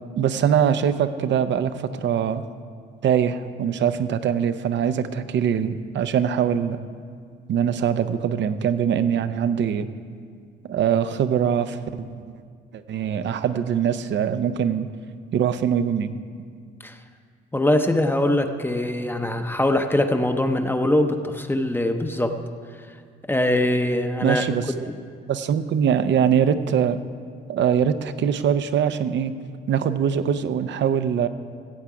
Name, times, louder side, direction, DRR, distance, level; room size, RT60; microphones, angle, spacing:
voice 1, 0.2-2.4 3.0-6.8 7.5-9.9 10.7-12.2 12.7-14.9 15.3-16.1 24.2-24.6 25.3-27.0 27.5-29.3 29.7-31.3, right 8 dB, 65° right, 11 dB, 0.6 m, -22 dB
voice 2, 17.5-22.4 23.3-24.6 24.9-25.0, left 1 dB, 10° left, 6 dB, 0.7 m, -22 dB
15.0 x 8.2 x 4.9 m, 2.1 s
cardioid pair, 90°, 20 cm